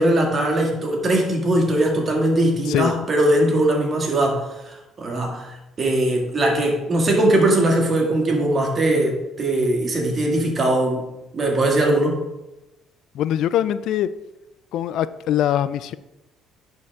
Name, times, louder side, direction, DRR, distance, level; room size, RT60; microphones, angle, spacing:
voice 1, 0.0-11.1 11.3-12.2, right 1 dB, 40° right, 1 dB, 2.2 m, -20 dB
voice 2, 13.1-14.1 14.7-16.0, left 11 dB, 70° left, 15 dB, 0.3 m, -22 dB
11.0 x 4.5 x 3.6 m, 1.0 s
supercardioid pair, 70°, 0 cm